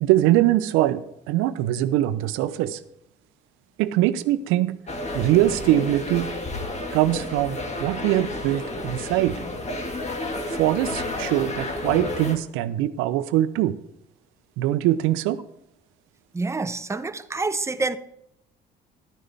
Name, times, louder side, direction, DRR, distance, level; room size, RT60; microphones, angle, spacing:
voice 1, 0.0-2.8 3.8-4.8 5.1-6.3 6.9-9.4 10.5-13.8 14.6-15.4, right 14 dB, 75° right, 0.7 m, -22 dB
sound 1, 4.9-12.4, left 2 dB, 35° left, 1.9 m, -31 dB
voice 2, 16.3-18.0, right 3 dB, 15° right, 0.7 m, -27 dB
12.0 x 10.0 x 3.5 m
hypercardioid pair, 60°, 21 cm